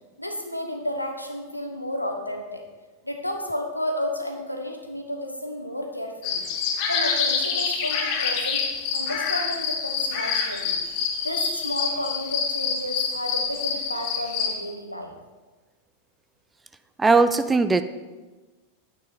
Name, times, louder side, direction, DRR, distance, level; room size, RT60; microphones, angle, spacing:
voice 1, 0.2-2.6 3.0-6.4 6.9-8.6 8.9-10.7 11.2-15.2, left 1 dB, 85° left, 4 dB, 1.2 m, -32 dB
sound 1, 6.2-14.5, left 5 dB, 45° left, 1.4 m, -27 dB
voice 2, 17.0-17.8, right 3 dB, 10° right, 11 dB, 0.5 m, -18 dB
9.9 x 8.7 x 4.3 m, 1.3 s
figure-of-eight pair, 90°, 0 cm